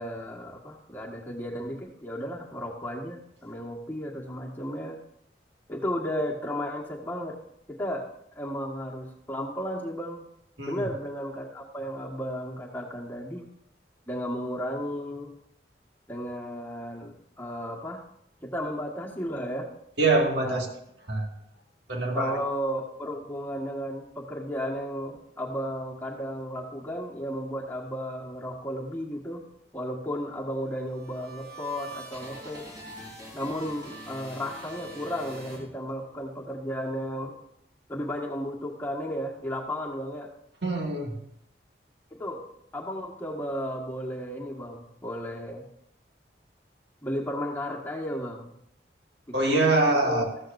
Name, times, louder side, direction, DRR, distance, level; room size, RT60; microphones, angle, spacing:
voice 1, 0.0-5.0 5.7-7.4 7.7-8.1 8.3-10.2 10.6-13.5 14.1-15.3 16.1-18.0 18.4-19.7 20.4-20.6 22.1-29.4 29.7-32.7 33.3-37.3 37.9-40.3 42.1-42.4 42.7-45.7 47.0-48.5 49.4-50.2, equal, 10° left, -2 dB, 1.7 m, -34 dB
voice 2, 20.0-20.7 21.1-21.3 21.9-22.4 40.6-41.2 49.3-50.2, right 2 dB, 80° right, 1 dB, 2.2 m, -24 dB
sound 1, 30.6-36.2, right 1 dB, 20° right, 3.9 m, -44 dB
14.5 x 13.5 x 2.7 m, 0.76 s
head